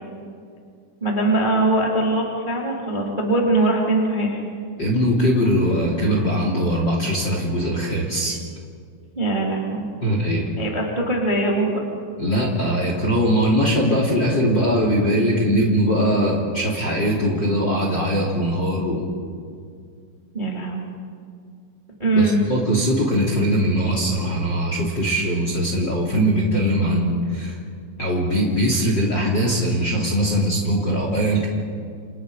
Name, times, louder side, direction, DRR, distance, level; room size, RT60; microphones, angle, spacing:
voice 1, 1.0-4.4 9.1-9.9 10.6-11.8 20.3-20.8 22.0-22.4, right 2 dB, 10° right, -2 dB, 2.4 m, -21 dB
voice 2, 4.8-8.4 10.0-10.5 12.2-19.1 22.1-27.5 28.0-31.5, equal, 25° left, 0 dB, 2.9 m, -21 dB
30.0 x 27.5 x 5.1 m, 2.2 s
omnidirectional pair, 5.8 m